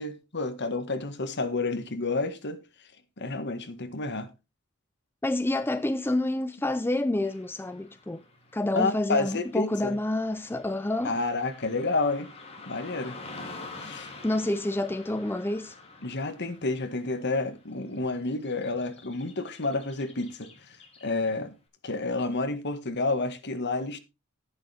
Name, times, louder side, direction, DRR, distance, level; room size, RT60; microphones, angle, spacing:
voice 1, 0.0-2.6 3.2-4.3 8.7-9.9 11.0-12.3 12.7-13.2 13.8-14.1 16.0-20.5 21.0-21.5 21.8-24.0, left 3 dB, 55° left, 1.7 m, -30 dB
voice 2, 5.2-8.2 8.5-11.2 14.2-15.7, left 1 dB, 10° left, 0.4 m, -28 dB
Car passing by / Traffic noise roadway noise, 7.2-21.5, left 3 dB, 30° left, 2.9 m, -48 dB
11.5 x 10.0 x 3.4 m
head